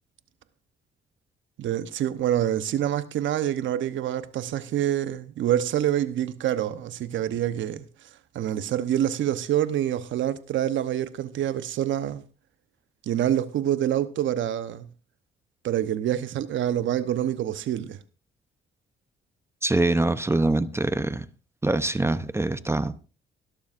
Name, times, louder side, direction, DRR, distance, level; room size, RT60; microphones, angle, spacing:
voice 1, 1.6-7.8 8.3-12.2 13.1-14.9 15.6-18.0, right 11 dB, 70° right, 1.0 m, -26 dB
voice 2, 19.6-21.3 21.6-22.9, right 2 dB, 15° right, 0.7 m, -24 dB
17.5 x 12.0 x 2.6 m
cardioid pair, 90°, 20 cm